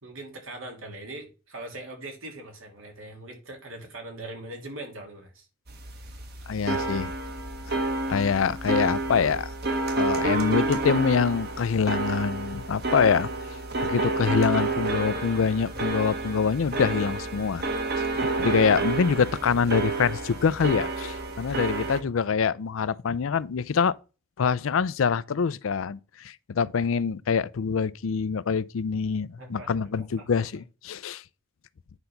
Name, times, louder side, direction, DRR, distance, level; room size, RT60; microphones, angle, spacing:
voice 1, 0.0-5.5 6.5-7.0 29.4-29.7 30.2-30.3, right 2 dB, 80° right, 2.9 m, -41 dB
sound 1, 5.7-22.0, right 2 dB, 50° right, 1.5 m, -29 dB
voice 2, 6.5-7.1 8.1-9.5 9.9-13.3 13.9-17.6 18.4-23.9 24.4-31.2, left 6 dB, 80° left, 0.4 m, -25 dB
9.8 x 4.0 x 5.8 m
head